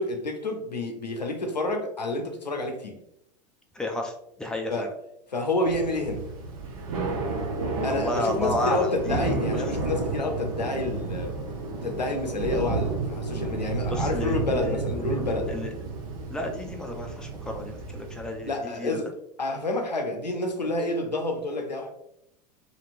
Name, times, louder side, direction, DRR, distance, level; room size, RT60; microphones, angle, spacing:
voice 1, 0.0-3.0 4.7-4.9 5.3-6.2 7.8-11.3 11.8-15.5 18.4-19.1 19.4-21.9, left 2 dB, 85° left, 0.6 m, -29 dB
voice 2, 3.7-4.9 7.9-9.6 13.9-15.7 16.3-19.0, left 1 dB, 5° left, 0.4 m, -32 dB
Thunder / Rain, 5.7-18.6, right 3 dB, 55° right, 0.8 m, -31 dB
2.9 x 2.9 x 2.5 m
figure-of-eight pair, 85°, 21 cm